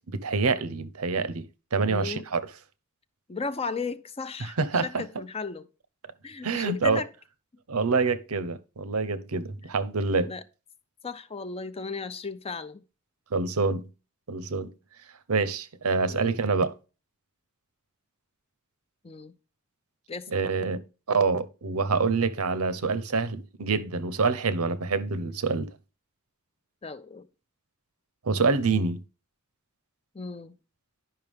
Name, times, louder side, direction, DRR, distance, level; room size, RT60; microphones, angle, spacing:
voice 1, 0.1-1.5 1.7-2.4 4.6-5.0 6.4-7.0 7.7-10.3 13.3-13.9 14.3-14.7 15.3-16.7 20.3-25.7 28.2-29.0, right 4 dB, 85° right, 0.8 m, -26 dB
voice 2, 1.9-2.3 3.3-5.7 6.2-7.1 10.2-10.4 11.0-12.8 16.1-16.4 19.0-19.3 20.1-20.3 26.8-27.3 30.1-30.5, left 4 dB, 30° left, 0.6 m, -35 dB
11.0 x 5.7 x 3.5 m
head